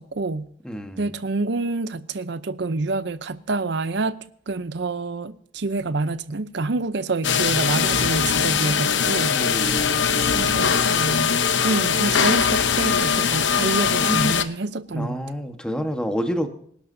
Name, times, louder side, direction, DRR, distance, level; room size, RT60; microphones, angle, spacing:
voice 1, 0.0-0.5 1.0-4.2 4.5-9.4 10.3-11.4 11.6-15.2, right 3 dB, 70° right, 0.7 m, -27 dB
voice 2, 0.6-1.1 8.5-8.6 9.3-9.9 14.0-14.4 14.9-16.5, equal, 5° left, 1.3 m, -28 dB
sound 1, 7.2-14.4, left 6 dB, 75° left, 0.9 m, -21 dB
25.5 x 11.5 x 2.7 m
head